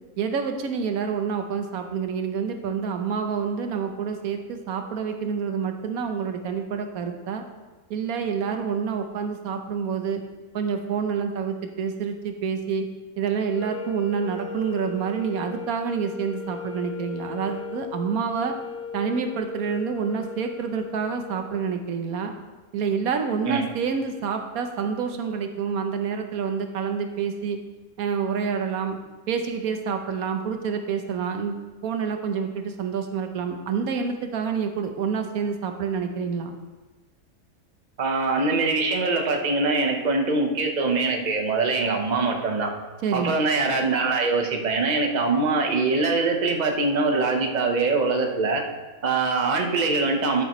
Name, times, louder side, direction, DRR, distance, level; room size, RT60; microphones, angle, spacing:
voice 1, 0.2-7.4 7.9-10.2 10.5-12.9 13.2-18.6 18.9-22.3 22.7-27.6 28.0-29.0 29.3-36.5 43.0-43.4, right 6 dB, 85° right, 6 dB, 1.3 m, -28 dB
sound 1, 13.5-21.7, left 4 dB, 60° left, 1.3 m, -37 dB
voice 2, 38.0-42.7 43.1-48.6 49.0-50.4, right 3 dB, 35° right, 2 dB, 1.0 m, -23 dB
12.5 x 7.0 x 3.0 m, 1.2 s
omnidirectional pair, 1.5 m